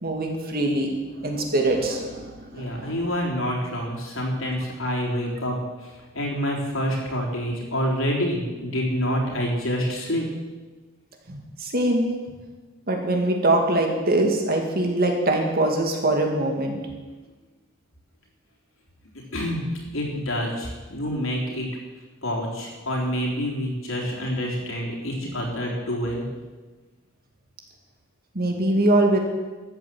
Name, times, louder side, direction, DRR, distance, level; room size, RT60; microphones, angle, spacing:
voice 1, 0.0-3.0 11.3-12.1 12.9-16.8 25.3-25.4 28.3-29.2, right 1 dB, 50° right, 2 dB, 2.2 m, -23 dB
voice 2, 2.5-10.2 19.3-19.6 19.9-21.7 22.2-26.3, equal, 75° left, -2 dB, 3.9 m, -27 dB
13.5 x 8.9 x 7.7 m, 1.3 s
head